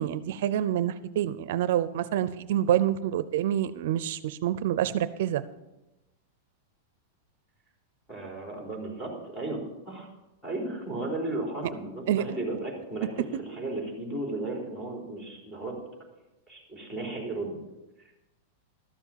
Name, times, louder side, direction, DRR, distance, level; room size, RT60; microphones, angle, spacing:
voice 1, 0.0-5.4 12.1-12.2, right 11 dB, 65° right, 14 dB, 0.5 m, -27 dB
voice 2, 8.1-10.1 10.4-15.8 16.5-17.6, right 2 dB, 5° left, -1 dB, 3.9 m, -35 dB
13.0 x 7.2 x 7.3 m, 1.0 s
supercardioid pair, 155°, 0 cm